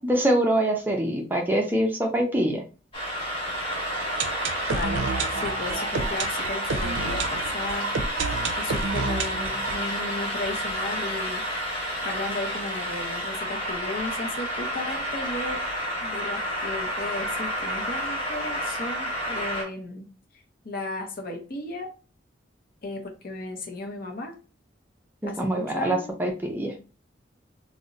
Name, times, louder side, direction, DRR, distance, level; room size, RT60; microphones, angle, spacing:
voice 1, 0.0-2.6 25.2-26.7, right 1 dB, 10° right, 1 dB, 0.4 m, -24 dB
sound 1, 2.9-19.6, equal, 30° left, 1.1 m, -30 dB
sound 2, 3.7-11.5 11.7-11.8 12.0-12.1 12.7-12.8, right 4 dB, 85° right, 0.4 m, -31 dB
voice 2, 4.7-8.0 8.6-11.5 12.0-15.6 16.0-20.1 20.6-21.9 22.8-24.3 25.3-26.1, left 2 dB, 50° left, 3 dB, 0.6 m, -35 dB
2.5 x 2.1 x 3.8 m, 0.34 s
head